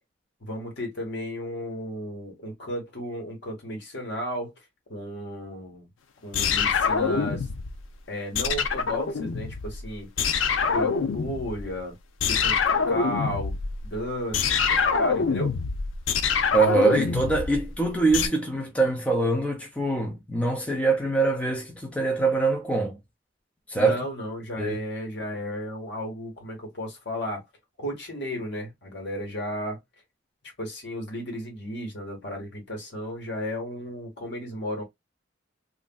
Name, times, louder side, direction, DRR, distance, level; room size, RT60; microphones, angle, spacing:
voice 1, 0.4-5.9 6.2-7.5 8.1-10.1 10.6-12.0 12.2-13.6 13.8-15.5 23.7-27.4 27.8-29.8 30.6-34.8, equal, 60° left, 1.4 m, -34 dB
sound 1, 6.3-7.9 8.3-9.9 10.2-11.8 12.2-18.3, left 5 dB, 75° left, 0.5 m, -25 dB
voice 2, 16.5-23.0 23.7-24.0 24.6-24.8, right 3 dB, 5° left, 0.5 m, -24 dB
3.2 x 2.5 x 2.2 m
head